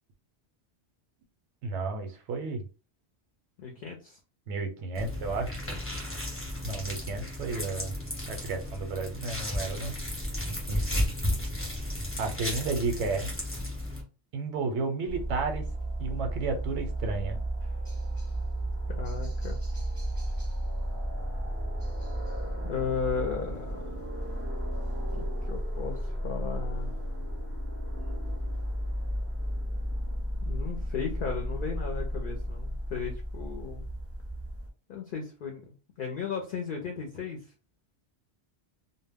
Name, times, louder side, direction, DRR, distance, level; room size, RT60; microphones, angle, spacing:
voice 1, 1.6-2.6 4.5-5.6 6.6-7.9 8.3-9.9 10.7-11.1 12.2-13.3 14.3-15.6 16.0-17.4, right 3 dB, 85° right, 5 dB, 0.9 m, -32 dB
voice 2, 3.6-4.2 18.9-19.6 22.6-24.1 25.1-27.0 30.4-33.8 34.9-37.5, left 6 dB, 60° left, 2 dB, 0.6 m, -35 dB
sound 1, 4.9-14.0, left 1 dB, 15° left, 0.8 m, -34 dB
sound 2, 15.1-34.7, right 1 dB, 15° right, 0.6 m, -33 dB
2.1 x 2.1 x 3.4 m, 0.34 s
omnidirectional pair, 1.2 m